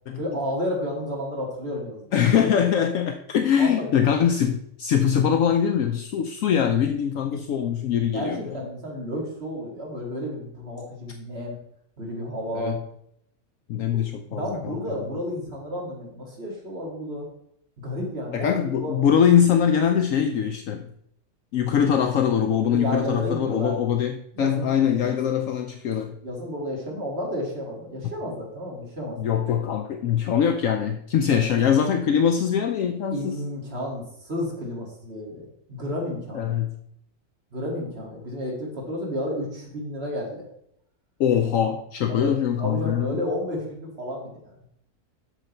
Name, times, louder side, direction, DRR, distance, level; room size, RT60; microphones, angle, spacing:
voice 1, 0.2-2.1 3.6-3.9 8.1-11.6 12.0-12.7 14.3-17.3 17.8-18.5 18.8-19.0 22.7-23.8 24.3-25.2 26.2-29.2 31.3-31.4 33.1-36.5 37.5-40.5 42.1-44.5, equal, 45° right, -2 dB, 2.4 m, -31 dB
voice 2, 2.1-8.4 12.5-12.8 13.7-15.0 18.3-20.9 21.5-26.2 29.2-33.4 36.3-36.7 41.2-43.2, left 8 dB, 70° left, 5 dB, 0.9 m, -22 dB
7.9 x 6.6 x 4.3 m, 0.73 s
omnidirectional pair, 1.6 m